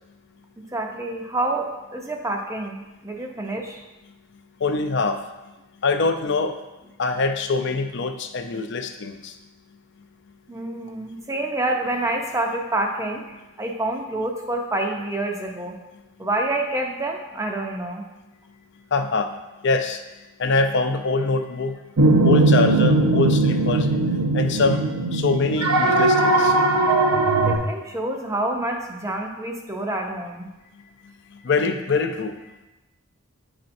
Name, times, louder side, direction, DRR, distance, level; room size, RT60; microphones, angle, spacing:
voice 1, 0.7-3.8 10.5-15.8 16.2-18.0 27.5-30.5, right 2 dB, 15° right, 2 dB, 0.5 m, -27 dB
voice 2, 4.6-5.2 5.8-6.6 7.0-9.3 18.9-19.3 19.6-20.0 20.4-21.8 22.2-23.9 24.3-26.6 31.4-32.4, left 3 dB, 50° left, 7 dB, 0.4 m, -24 dB
sound 1, 22.0-27.6, right 2 dB, 90° right, 0.8 m, -19 dB
9.5 x 4.3 x 2.6 m, 1.1 s
head